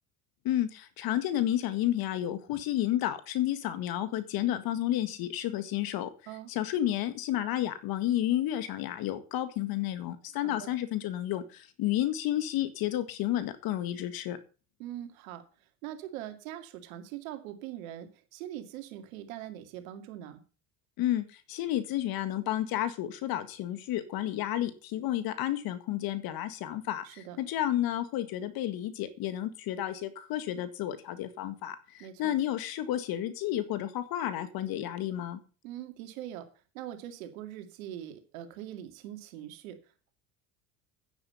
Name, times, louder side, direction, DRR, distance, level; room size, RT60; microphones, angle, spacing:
voice 1, 0.4-6.1 6.5-14.4 21.0-35.4, left 12 dB, 60° left, 11 dB, 1.9 m, -31 dB
voice 2, 10.4-10.7 14.8-20.4 27.0-27.4 32.0-32.3 35.6-36.5 36.7-40.1, right 12 dB, 80° right, 7 dB, 2.3 m, -42 dB
10.0 x 9.7 x 5.6 m, 0.35 s
hypercardioid pair, 80°, 41 cm